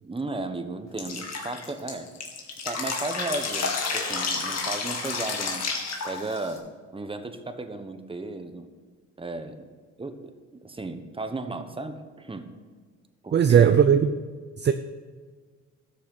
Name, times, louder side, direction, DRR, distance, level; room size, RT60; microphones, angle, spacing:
voice 1, 0.0-2.1 2.6-5.7 6.0-6.7 6.9-8.7 9.2-9.7 10.0-10.3 10.6-12.5 13.2-13.8, right 2 dB, 15° right, 8 dB, 1.2 m, -35 dB
Drip, 1.0-6.6, left 4 dB, 60° left, 2.3 m, -30 dB
voice 2, 13.3-14.1 14.6-14.7, right 8 dB, 35° right, 9 dB, 0.6 m, -17 dB
13.0 x 6.9 x 6.7 m, 1.5 s
cardioid pair, 90°, 30 cm